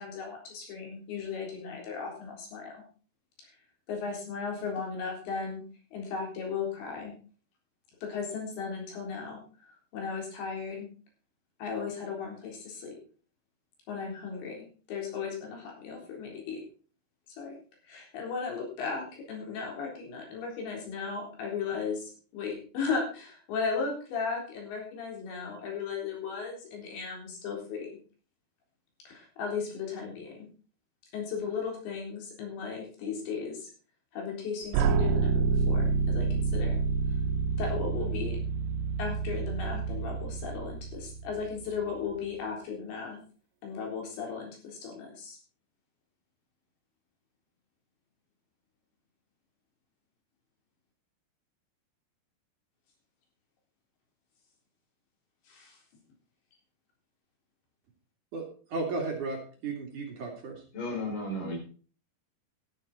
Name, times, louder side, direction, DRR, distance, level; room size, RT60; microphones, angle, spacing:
voice 1, 0.0-2.8 3.4-3.5 3.9-5.6 5.9-7.1 8.0-9.4 9.9-10.9 11.6-13.0 13.9-16.6 17.4-17.6 17.9-27.9 29.1-30.5 31.1-33.7 34.1-36.8 37.6-38.4 39.0-43.2 43.6-45.4 55.5-55.8, left 5 dB, 85° left, 0 dB, 6.1 m, -36 dB
sound 1, 34.7-41.7, right 4 dB, 90° right, 3.1 m, -28 dB
voice 2, 58.3-60.6, right 3 dB, 50° right, 1 dB, 3.3 m, -35 dB
voice 3, 60.7-61.6, left 1 dB, 50° left, 1 dB, 5.7 m, -33 dB
12.5 x 11.0 x 4.3 m, 0.40 s
omnidirectional pair, 5.0 m